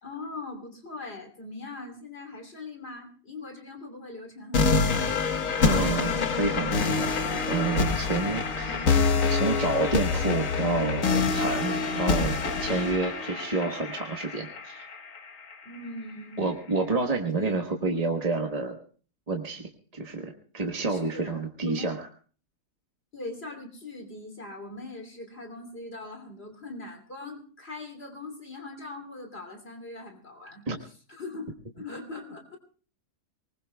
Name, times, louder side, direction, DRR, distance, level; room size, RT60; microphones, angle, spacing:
voice 1, 0.0-5.3 8.6-8.8 15.6-16.5 17.3-17.6 20.9-21.9 23.1-32.6, left 2 dB, 40° left, 3 dB, 3.2 m, -41 dB
sound 1, 4.5-15.5, left 4 dB, 60° left, 1.6 m, -26 dB
voice 2, 5.6-8.9 9.3-14.9 16.4-18.8 19.3-22.1 30.7-30.8, right 3 dB, 25° right, 2 dB, 1.2 m, -29 dB
24.0 x 20.0 x 2.3 m, 0.41 s
omnidirectional pair, 1.7 m